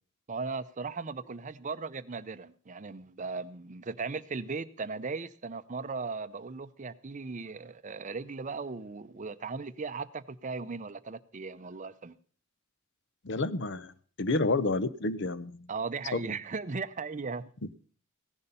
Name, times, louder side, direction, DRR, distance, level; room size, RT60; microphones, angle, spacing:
voice 1, 0.3-12.1 15.7-17.5, right 4 dB, 35° right, 0.6 m, -37 dB
voice 2, 13.2-13.9 14.2-15.6 16.1-16.2, left 2 dB, 60° left, 0.8 m, -29 dB
16.5 x 11.0 x 5.5 m
head